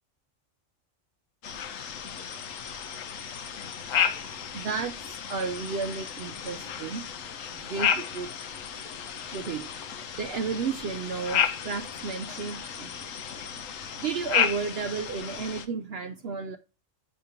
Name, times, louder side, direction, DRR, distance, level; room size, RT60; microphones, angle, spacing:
sound 1, 1.4-15.7, left 8 dB, 90° left, 1.1 m, -32 dB
voice 1, 4.3-5.0 5.3-7.1 7.5-8.3 8.8-8.9 9.3-13.0 14.0-16.6, right 5 dB, 65° right, 0.7 m, -33 dB
8.6 x 2.9 x 5.0 m
omnidirectional pair, 1.3 m